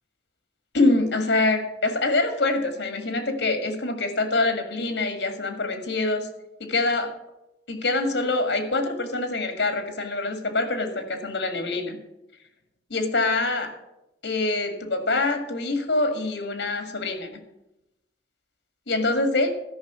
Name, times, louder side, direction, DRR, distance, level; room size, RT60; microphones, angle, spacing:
voice 1, 0.7-6.3 6.6-7.1 7.7-12.0 12.9-13.7 14.2-17.4 18.9-19.5, left 2 dB, 75° left, 7 dB, 1.9 m, -25 dB
12.5 x 5.6 x 8.0 m, 0.90 s
head